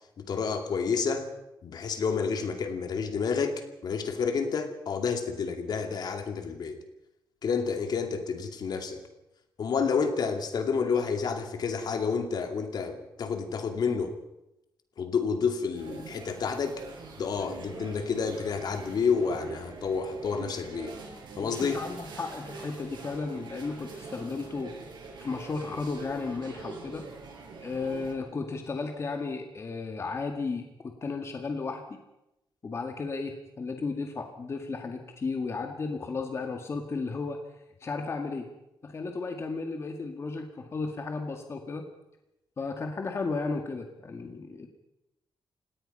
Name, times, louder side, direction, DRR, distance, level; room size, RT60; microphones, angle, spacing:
voice 1, 0.2-1.3 1.6-6.8 7.4-9.0 9.6-14.2 15.0-16.8 17.2-21.0 21.4-21.8, left 5 dB, 60° left, 6 dB, 2.6 m, -29 dB
sound 1, 15.7-28.1, right 4 dB, 65° right, 7.6 m, -44 dB
voice 2, 21.4-24.7 25.2-27.0 27.6-32.0 32.6-37.4 37.8-38.5 38.8-41.8 42.6-44.7, left 4 dB, 35° left, 4 dB, 2.0 m, -34 dB
30.0 x 17.5 x 5.6 m, 0.89 s
wide cardioid pair, 150°, 8 cm